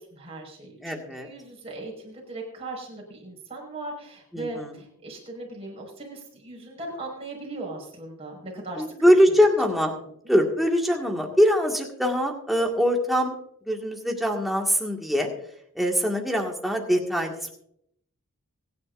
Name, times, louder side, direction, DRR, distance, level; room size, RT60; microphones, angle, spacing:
voice 1, 0.0-8.9 9.3-9.4, right 2 dB, 25° right, -1 dB, 5.3 m, -38 dB
voice 2, 0.8-1.3 4.3-4.7 8.8-9.9 10.3-13.4 13.7-15.3 15.8-17.5, equal, ahead, 0 dB, 1.9 m, -22 dB
24.5 x 10.0 x 2.6 m, 0.71 s
head